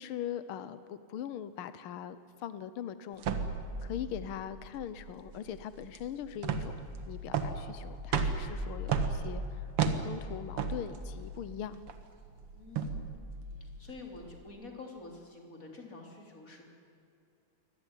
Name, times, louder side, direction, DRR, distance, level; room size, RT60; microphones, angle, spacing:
voice 1, 0.0-3.3 3.8-9.7 10.0-11.8, left 10 dB, 85° left, 13 dB, 1.2 m, -41 dB
sound 1, 3.2-14.4, right 5 dB, 55° right, 2.1 m, -35 dB
voice 2, 3.9-4.2 12.5-13.2 13.6-16.7, left 3 dB, 25° left, 2 dB, 3.8 m, -48 dB
24.0 x 18.5 x 9.8 m, 2.5 s
omnidirectional pair, 3.4 m